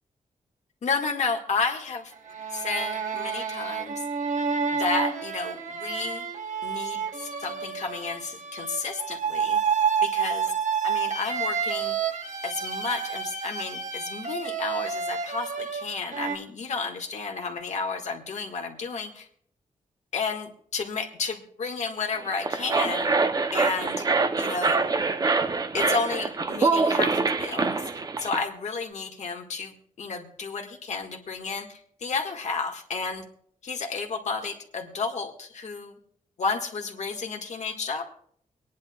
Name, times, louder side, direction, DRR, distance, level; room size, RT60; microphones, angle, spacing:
voice 1, 0.8-2.1 2.5-4.0 4.7-6.3 6.6-9.6 10.0-10.5 10.8-12.0 12.4-19.3 20.1-23.1 23.5-24.1 24.4-24.8 25.7-27.9 28.2-33.2 33.6-36.0 36.4-38.0, left 4 dB, 65° left, 3 dB, 1.6 m, -32 dB
sound 1, 2.1-16.3, right 6 dB, 75° right, 1.6 m, -29 dB
sound 2, 22.2-28.4, right 4 dB, 30° right, 0.6 m, -25 dB
24.5 x 10.5 x 2.3 m, 0.62 s
wide cardioid pair, 145°, 13 cm